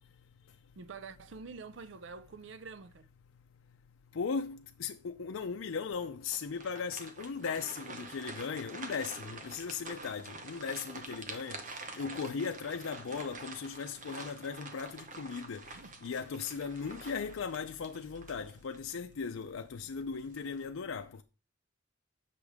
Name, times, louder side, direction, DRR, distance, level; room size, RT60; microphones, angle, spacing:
voice 1, 0.8-3.1 15.8-15.9, right 4 dB, 65° right, 0.5 m, -47 dB
voice 2, 4.1-11.6 12.0-15.6 16.0-21.2, left 5 dB, 90° left, 0.5 m, -37 dB
sound 1, 6.3-18.9 19.4-19.5 20.1-20.6, right 3 dB, 40° right, 1.0 m, -47 dB
8.0 x 5.9 x 3.5 m
head